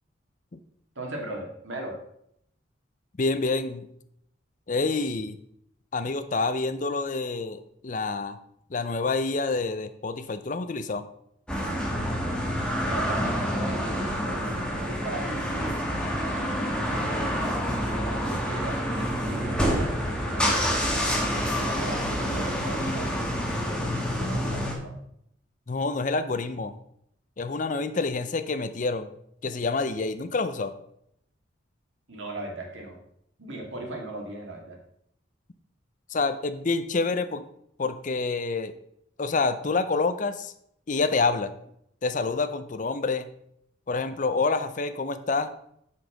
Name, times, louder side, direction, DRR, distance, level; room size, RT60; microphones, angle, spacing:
voice 1, 1.0-2.0 12.7-15.8 16.9-23.1 23.6-25.0 32.1-33.0 33.4-34.8, right 1 dB, 75° right, 0 dB, 2.3 m, -38 dB
voice 2, 3.2-3.9 4.7-5.4 5.9-8.4 8.7-11.1 25.7-26.7 27.4-29.1 29.4-30.7 36.1-37.4 37.8-38.8 39.2-40.5 40.9-41.5 42.0-43.3 43.9-45.5, left 3 dB, 40° left, 11 dB, 0.5 m, -27 dB
sound 1, 11.5-24.7, equal, 5° left, 1.4 m, -27 dB
7.3 x 6.2 x 5.1 m, 0.73 s
head